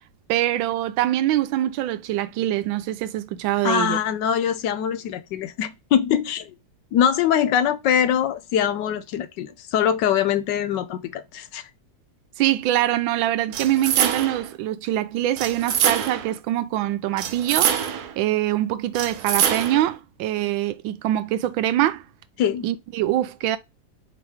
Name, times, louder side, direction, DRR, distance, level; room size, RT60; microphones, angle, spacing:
voice 1, 0.3-4.0 12.4-17.8 18.2-22.0 22.6-23.6, right 13 dB, 90° right, 1.3 m, -24 dB
voice 2, 3.6-6.5 6.9-11.6 22.4-22.7, left 9 dB, 75° left, 1.2 m, -23 dB
sound 1, 13.5-14.5 15.4-16.3 17.2-18.2 18.9-19.9, right 8 dB, 65° right, 1.1 m, -24 dB
4.5 x 3.0 x 3.3 m
omnidirectional pair, 2.1 m